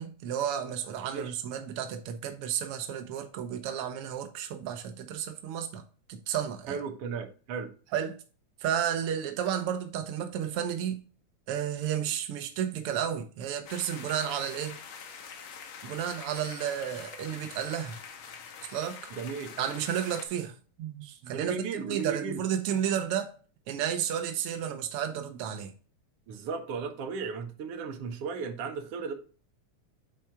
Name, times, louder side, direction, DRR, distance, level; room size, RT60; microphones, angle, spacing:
voice 1, 0.0-5.8 6.1-6.8 7.9-8.2 8.6-11.0 11.5-14.8 15.8-18.0 18.7-19.0 19.6-23.3 23.7-25.7, right 9 dB, 90° right, 1.2 m, -32 dB
voice 2, 6.7-7.7 19.2-19.5 21.3-22.4 26.3-29.1, right 5 dB, 65° right, 1.6 m, -35 dB
sound 1, 13.7-20.3, left 6 dB, 90° left, 1.1 m, -45 dB
7.4 x 4.4 x 3.5 m
omnidirectional pair, 3.6 m